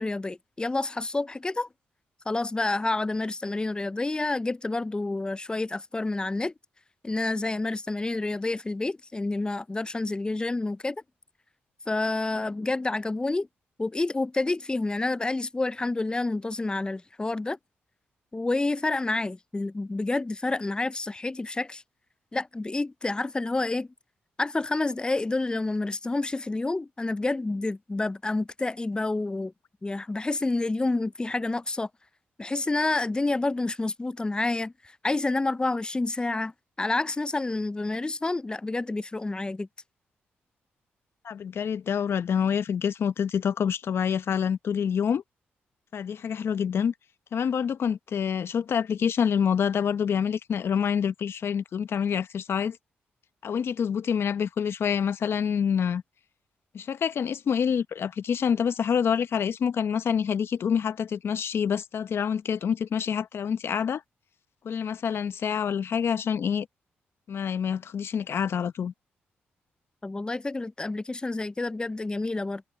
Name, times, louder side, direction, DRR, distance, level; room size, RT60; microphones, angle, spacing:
voice 1, 0.0-1.7 2.3-6.5 7.0-11.0 11.9-13.5 13.8-17.6 18.3-21.8 22.3-23.9 24.4-29.5 29.8-31.9 32.4-34.7 35.0-36.5 36.8-39.7 70.0-72.6, left 2 dB, 20° left, 0.4 m, -29 dB
voice 2, 41.2-45.2 45.9-46.9 47.3-52.8 53.4-56.0 56.7-64.0 64.6-66.7 67.3-68.9, left 7 dB, 65° left, 0.9 m, -27 dB
supercardioid pair, 55°, 4 cm